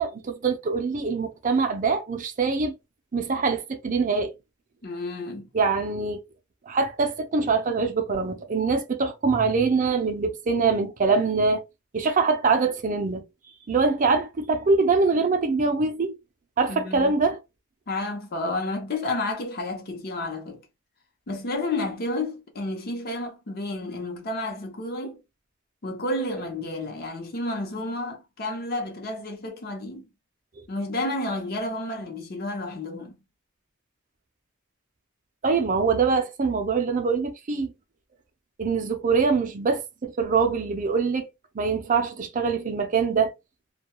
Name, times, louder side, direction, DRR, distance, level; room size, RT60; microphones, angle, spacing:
voice 1, 0.0-2.7 3.1-4.3 5.5-6.2 6.7-11.6 11.9-13.2 13.7-16.1 16.6-17.4 35.4-37.7 38.6-41.3 41.5-43.3, right 4 dB, 40° right, 0.5 m, -24 dB
voice 2, 4.8-5.5 16.7-17.1 17.9-20.6 21.3-25.2 25.8-30.1 30.7-33.2, left 2 dB, 50° left, 0.7 m, -31 dB
2.2 x 2.2 x 2.9 m
head